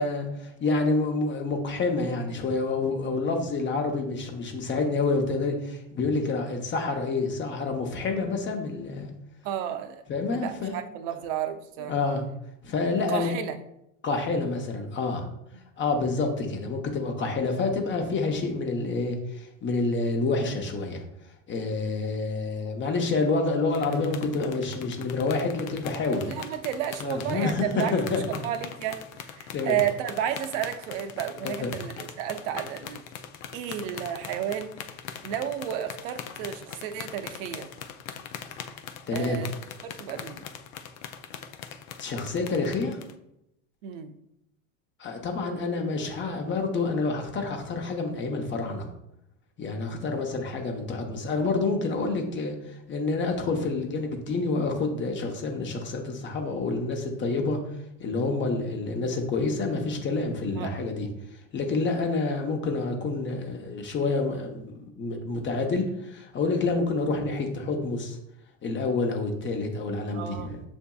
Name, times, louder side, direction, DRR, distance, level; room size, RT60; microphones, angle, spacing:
voice 1, 0.0-9.1 10.1-10.8 11.9-12.2 12.6-13.4 14.0-15.3 15.8-21.0 21.5-26.2 27.0-27.6 27.9-28.2 29.5-29.8 31.6-31.7 39.1-39.4 42.0-43.0 45.0-48.9 49.6-57.6 58.0-61.1 61.5-68.2 68.6-70.6, left 3 dB, 25° left, 3 dB, 0.8 m, -28 dB
voice 2, 9.4-11.9 13.1-13.6 15.5-15.6 26.2-28.0 28.3-33.0 33.5-34.7 35.2-37.7 39.1-39.5 39.8-40.4 43.8-44.1 60.6-60.9 70.1-70.5, right 10 dB, 65° right, 9 dB, 0.6 m, -32 dB
sound 1, 23.7-43.1, left 8 dB, 75° left, 0.5 m, -42 dB
7.2 x 2.6 x 2.3 m, 0.81 s
hypercardioid pair, 105°, 42 cm